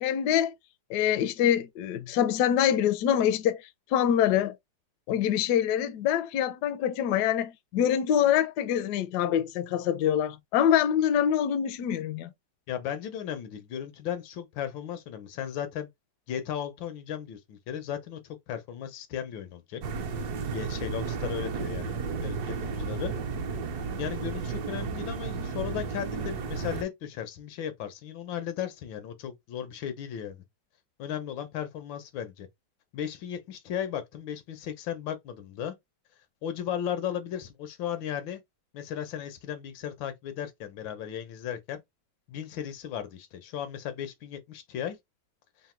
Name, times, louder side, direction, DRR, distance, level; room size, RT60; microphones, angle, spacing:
voice 1, 0.0-0.5 0.9-4.6 5.1-12.3, left 10 dB, 70° left, 1.0 m, -25 dB
voice 2, 12.7-15.9 16.3-19.8 20.4-23.1 24.0-30.4 31.0-32.5 32.9-35.7 36.4-38.4 38.7-41.8 42.3-45.0, left 9 dB, 90° left, 1.5 m, -36 dB
sound 1, 19.8-26.8, right 5 dB, 65° right, 1.2 m, -33 dB
3.9 x 2.1 x 4.3 m
omnidirectional pair, 2.0 m